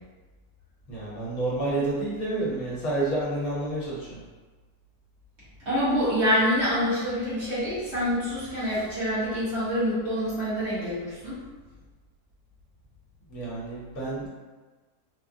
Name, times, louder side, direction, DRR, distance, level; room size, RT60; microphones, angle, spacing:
voice 1, 0.9-4.2 13.3-14.3, right 2 dB, 65° left, -7 dB, 1.2 m, -29 dB
voice 2, 5.6-11.4, equal, 45° right, -11 dB, 1.2 m, -26 dB
3.5 x 2.0 x 2.5 m, 1.3 s
omnidirectional pair, 1.7 m